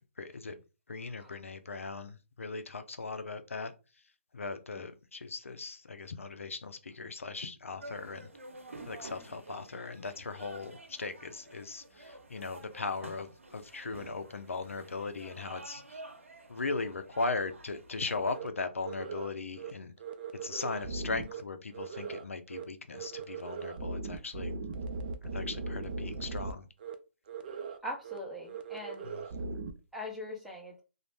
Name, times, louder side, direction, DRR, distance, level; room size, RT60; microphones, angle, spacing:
voice 1, 0.2-0.6 0.9-3.7 4.3-8.3 8.8-15.8 16.5-19.9 20.4-24.5 25.3-26.7 29.0-29.1, left 3 dB, 85° left, 0.4 m, -38 dB
sound 1, 7.8-18.4, right 2 dB, 90° right, 0.7 m, -50 dB
sound 2, 18.3-18.5 18.8-19.3 19.6-19.7 20.0-21.4 21.7-22.2 22.5-22.6 22.9-26.5 26.8-26.9 27.3-27.8 28.0-28.2 28.5-29.7, right 4 dB, 45° right, 0.4 m, -39 dB
voice 2, 27.8-29.0 29.9-30.8, left 1 dB, ahead, 0.6 m, -41 dB
2.5 x 2.1 x 3.1 m
figure-of-eight pair, 140°, 7 cm